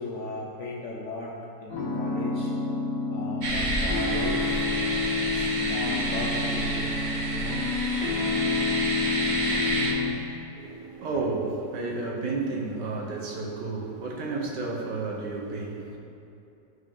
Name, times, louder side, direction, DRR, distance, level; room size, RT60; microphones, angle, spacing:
voice 1, 0.0-2.5 3.1-4.5 5.3-8.3 9.2-9.6 11.1-11.3, left 2 dB, 65° left, -2 dB, 0.8 m, -37 dB
sound 1, 1.7-10.1, left 4 dB, 90° left, 2.1 m, -29 dB
sound 2, 3.4-9.9, right 1 dB, 50° right, 0.5 m, -29 dB
voice 2, 10.5-16.0, right 3 dB, 80° right, -1 dB, 1.6 m, -32 dB
11.5 x 3.8 x 3.5 m, 2.8 s
omnidirectional pair, 1.8 m